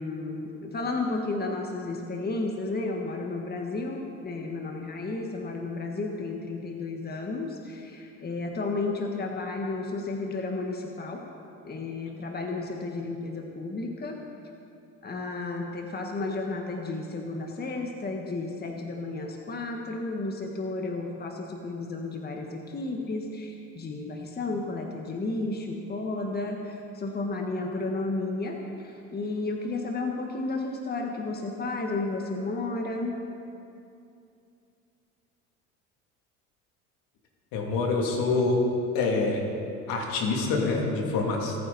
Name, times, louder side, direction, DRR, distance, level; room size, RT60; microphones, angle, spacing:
voice 1, 0.0-11.2 11.6-14.2 15.0-33.2, left 3 dB, 25° left, 2 dB, 1.6 m, -32 dB
voice 2, 37.5-38.6 38.9-39.4 39.9-41.6, left 3 dB, 70° left, 0 dB, 2.9 m, -26 dB
26.0 x 9.4 x 4.2 m, 2.6 s
supercardioid pair, 80°, 35 cm